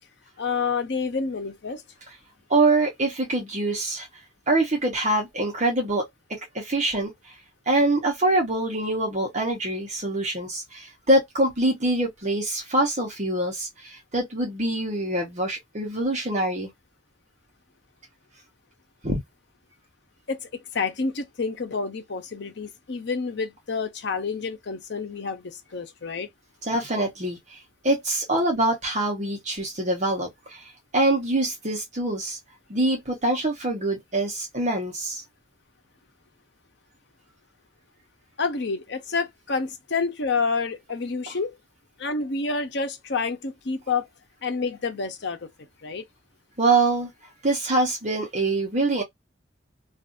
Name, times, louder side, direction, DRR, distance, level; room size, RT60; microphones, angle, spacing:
voice 1, 0.4-1.8 20.3-26.3 38.4-41.6 42.0-44.1 44.4-45.5 45.8-46.0, left 4 dB, 65° left, 0.8 m, -28 dB
voice 2, 2.5-4.1 4.5-6.1 6.5-7.1 7.7-16.7 19.0-19.2 26.7-27.6 27.8-32.4 32.7-35.2 46.6-47.1 47.4-49.0, right 2 dB, 40° right, 1.0 m, -24 dB
2.6 x 2.4 x 2.5 m
head